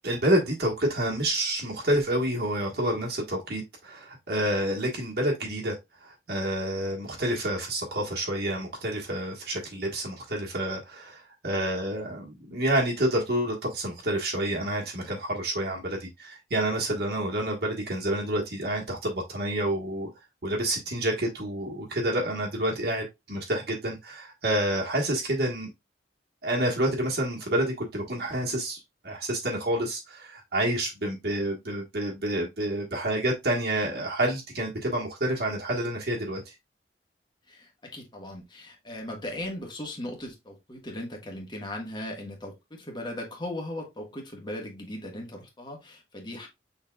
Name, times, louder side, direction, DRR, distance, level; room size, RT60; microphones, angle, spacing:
voice 1, 0.0-20.1 20.4-25.7 26.4-28.8 29.0-36.5, right 1 dB, 60° right, 1.3 m, -28 dB
voice 2, 37.5-46.5, left 1 dB, 25° left, 1.4 m, -38 dB
6.1 x 3.9 x 2.3 m
head